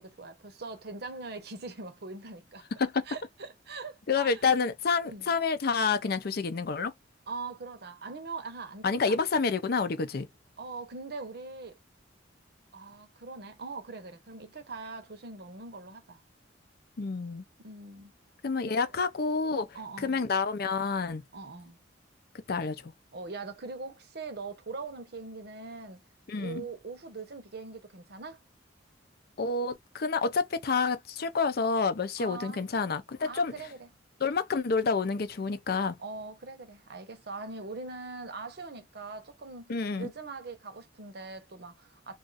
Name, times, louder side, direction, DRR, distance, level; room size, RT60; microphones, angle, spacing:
voice 1, 0.0-2.7 3.1-4.6 5.0-5.3 7.3-9.2 10.6-11.8 12.7-16.2 17.6-18.1 18.7-18.8 19.7-20.2 21.3-21.8 23.1-26.0 26.4-28.4 32.2-32.7 33.2-33.9 36.0-39.7 40.0-42.2, right 3 dB, 60° right, 0.8 m, -42 dB
voice 2, 4.1-6.9 8.8-10.3 17.0-17.4 18.4-19.7 20.0-21.2 22.5-22.9 26.3-26.6 29.4-33.5 34.2-36.0 39.7-40.1, left 4 dB, 55° left, 0.5 m, -28 dB
2.5 x 2.4 x 3.9 m
head